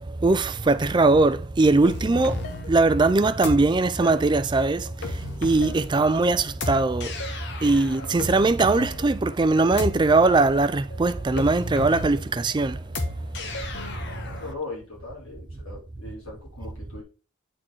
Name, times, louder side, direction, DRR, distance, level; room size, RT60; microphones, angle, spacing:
voice 1, 0.2-2.4 2.7-4.9 5.4-7.1 7.6-12.8, right 3 dB, 20° right, 0.3 m, -20 dB
sound 1, 1.8-14.5, left 2 dB, 50° left, 1.2 m, -35 dB
voice 2, 14.4-17.0, left 3 dB, 65° left, 4.2 m, -39 dB
8.7 x 4.3 x 4.5 m
head